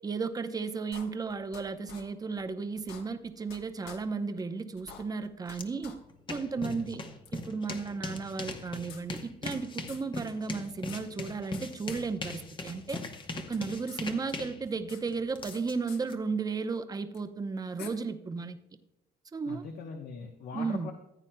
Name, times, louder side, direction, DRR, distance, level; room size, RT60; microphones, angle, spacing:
voice 1, 0.0-6.0 6.3-7.0 7.3-13.0 13.5-18.6 19.3-19.6 20.5-20.9, right 4 dB, 20° right, 8 dB, 0.7 m, -34 dB
sound 1, 0.9-1.6 1.9-2.0 2.4-2.5 2.8-3.6 3.8-4.0 4.4-4.5 4.8-5.6 5.8-5.9 6.3-6.4 7.2-7.3 8.4-9.6 9.9-10.0 10.3-10.4 10.6-11.6 11.9-12.0 12.4-13.0 13.3-14.0 14.3-15.6 15.9-16.0 17.1-17.2 17.8-17.9, left 7 dB, 75° left, 1.2 m, -49 dB
sound 2, 5.5-5.6 6.0-16.1, left 3 dB, 30° left, 1.0 m, -40 dB
voice 2, 6.5-7.0 19.5-20.9, left 5 dB, 60° left, 3 dB, 1.0 m, -41 dB
14.5 x 8.8 x 2.2 m, 0.92 s
cardioid pair, 110°, 17 cm